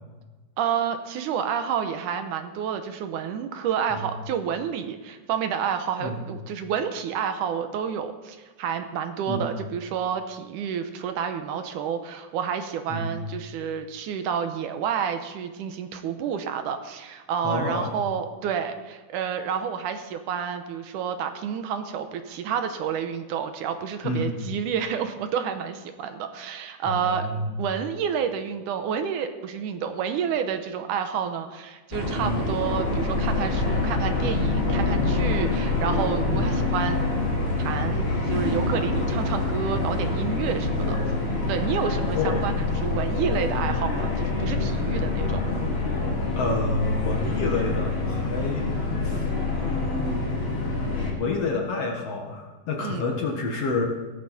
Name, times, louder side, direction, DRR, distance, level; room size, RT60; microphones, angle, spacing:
voice 1, 0.6-27.3 27.6-37.0 37.6-41.0 41.5-45.4 52.8-53.1, right 7 dB, 75° right, 8 dB, 2.2 m, -29 dB
voice 2, 17.4-18.0 24.0-24.3 26.9-27.5 32.2-32.4 36.3-36.7 40.7-41.3 42.1-42.5 46.4-48.7 49.0-49.3 49.6-50.3 51.1-53.8, left 2 dB, 55° left, 0 dB, 2.1 m, -29 dB
sound 1, 31.9-51.1, left 3 dB, 20° left, 2.3 m, -26 dB
16.0 x 13.0 x 4.2 m, 1.3 s
omnidirectional pair, 3.9 m